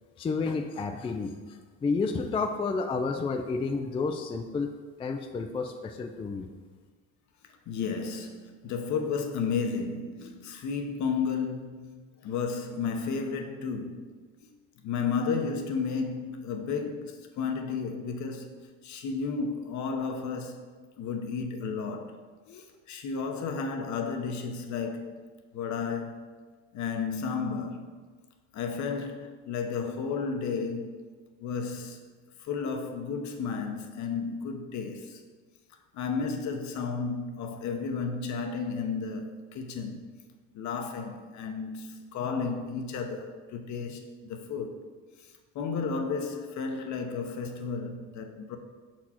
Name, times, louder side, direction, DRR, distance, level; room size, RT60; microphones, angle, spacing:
voice 1, 0.2-4.7 5.0-6.5, left 4 dB, 15° left, 0.3 m, -31 dB
voice 2, 7.7-12.0 12.2-14.1 14.4-14.5 14.8-18.5 18.8-20.7 21.0-22.2 22.5-25.2 25.5-26.1 26.7-27.9 28.5-31.0 31.4-32.0 32.4-35.2 35.9-40.1 40.5-44.8 45.5-48.6, left 5 dB, 60° left, 0.8 m, -33 dB
5.9 x 4.4 x 4.2 m
cardioid pair, 115°, 33 cm